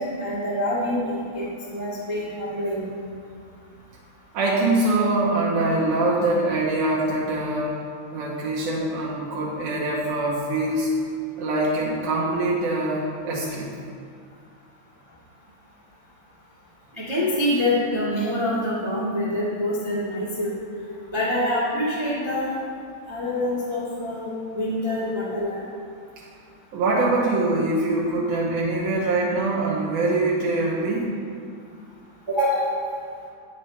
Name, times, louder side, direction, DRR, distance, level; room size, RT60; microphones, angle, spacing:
voice 1, 0.0-2.9 17.0-20.5 21.1-22.6 23.1-25.6 32.3-32.7, left 1 dB, 15° right, -9 dB, 0.8 m, -26 dB
voice 2, 4.3-7.7 8.1-10.9 11.4-13.7 26.2-26.3 26.7-31.2, right 2 dB, 80° right, -5 dB, 2.3 m, -23 dB
8.8 x 6.6 x 3.2 m, 2.2 s
omnidirectional pair, 3.5 m